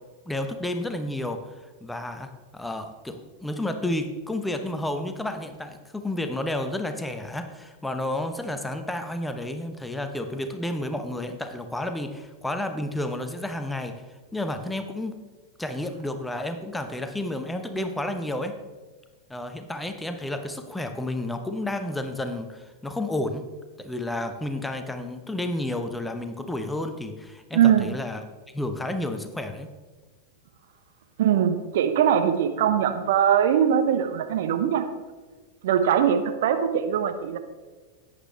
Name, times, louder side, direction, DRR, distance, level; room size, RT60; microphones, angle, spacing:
voice 1, 0.3-13.9 14.3-15.2 15.6-18.6 19.3-23.5 23.8-28.2 28.5-29.7, left 1 dB, 5° left, 7 dB, 0.9 m, -31 dB
voice 2, 27.5-27.9 31.2-34.8 35.6-37.4, right 9 dB, 55° right, 8 dB, 0.9 m, -21 dB
11.0 x 9.3 x 3.3 m, 1.3 s
figure-of-eight pair, 90°, 0 cm